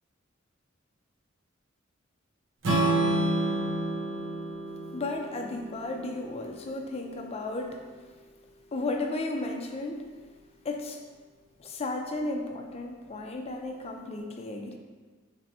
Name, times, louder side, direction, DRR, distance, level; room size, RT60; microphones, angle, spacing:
Strum, 2.6-6.8, right 2 dB, 70° right, 0.8 m, -29 dB
voice 1, 4.9-7.8 8.7-10.0 10.6-11.0 11.6-14.8, left 2 dB, 30° left, 2 dB, 0.4 m, -34 dB
4.2 x 3.3 x 2.8 m, 1.5 s
head